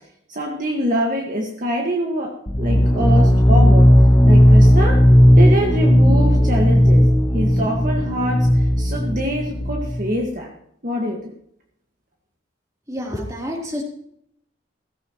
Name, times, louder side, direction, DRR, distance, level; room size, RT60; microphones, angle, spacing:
voice 1, 0.3-2.3 2.6-3.9 4.2-5.0 5.4-7.1 7.3-10.5 10.8-11.3, equal, 45° right, 0 dB, 1.7 m, -24 dB
sound 1, 2.5-10.1, equal, 20° left, 0.9 m, -14 dB
voice 2, 12.9-13.8, equal, 15° right, -1 dB, 3.3 m, -28 dB
16.0 x 15.0 x 3.1 m, 0.71 s
head